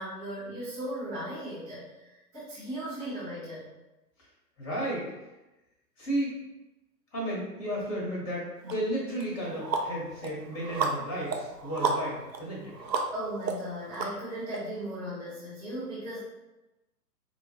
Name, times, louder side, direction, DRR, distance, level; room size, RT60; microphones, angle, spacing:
voice 1, 0.0-3.7 13.1-16.2, equal, 5° right, -16 dB, 0.5 m, -37 dB
voice 2, 4.6-5.1 6.0-6.3 7.1-12.7, right 1 dB, 20° left, -5 dB, 1.1 m, -33 dB
sound 1, 8.7-8.8 9.2-14.6, right 5 dB, 75° right, 0.7 m, -33 dB
4.6 x 2.2 x 2.7 m, 1.0 s
figure-of-eight pair, 125°, 50 cm